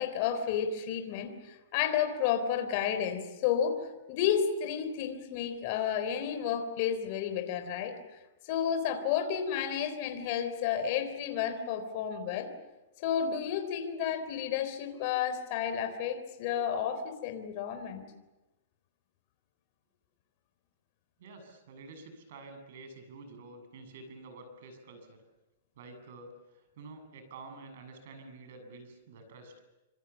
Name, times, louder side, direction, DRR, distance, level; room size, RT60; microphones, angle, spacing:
voice 1, 0.0-8.0 8.5-12.5 13.0-18.0, left 8 dB, 40° left, 8 dB, 3.8 m, -31 dB
voice 2, 21.2-25.2 25.8-29.5, right 3 dB, 60° right, 7 dB, 7.6 m, -49 dB
26.5 x 26.0 x 7.3 m, 1.0 s
supercardioid pair, 165°, 0 cm